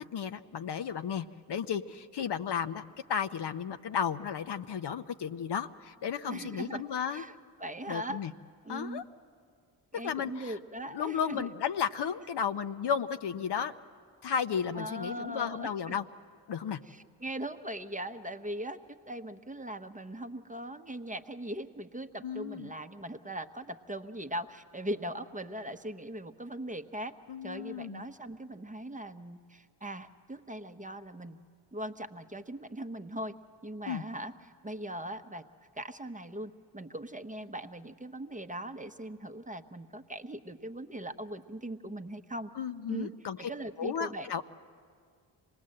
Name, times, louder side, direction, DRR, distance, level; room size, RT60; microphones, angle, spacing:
voice 1, 0.0-2.8 3.1-7.2 7.9-8.3 8.7-9.0 10.0-10.6 10.9-13.7 14.2-16.0 16.5-16.8 22.2-22.7 27.3-28.0 33.9-34.0 42.6-43.5 43.8-44.4, left 7 dB, 55° left, 9 dB, 0.9 m, -34 dB
voice 2, 6.3-6.8 7.1-8.2 8.6-9.1 9.9-11.5 14.7-16.0 16.9-18.8 19.1-27.1 27.4-31.4 31.7-33.3 33.6-34.3 34.6-35.4 35.8-42.5 42.9-43.1 43.4-44.3, right 1 dB, 15° right, 8 dB, 1.0 m, -40 dB
25.5 x 19.5 x 7.7 m, 2.1 s
supercardioid pair, 45°, 50 cm